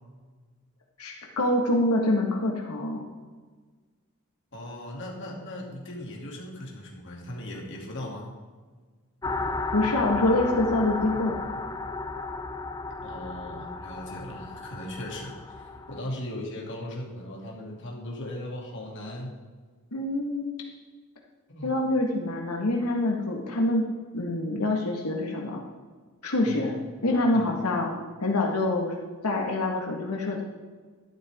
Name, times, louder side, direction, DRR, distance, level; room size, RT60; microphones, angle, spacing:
voice 1, 1.0-3.0 9.7-11.4 19.9-20.5 21.6-23.8 24.1-25.6 26.2-26.8 27.0-27.9 28.2-28.9 29.2-30.4, left 2 dB, 90° left, 0 dB, 1.6 m, -25 dB
voice 2, 4.5-8.3 13.0-19.3 21.5-21.8 26.4-26.7 27.3-27.4, left 1 dB, 55° left, -1 dB, 2.6 m, -38 dB
sound 1, 9.2-16.0, left 3 dB, 15° left, 0.5 m, -34 dB
12.0 x 12.0 x 3.6 m, 1.4 s
head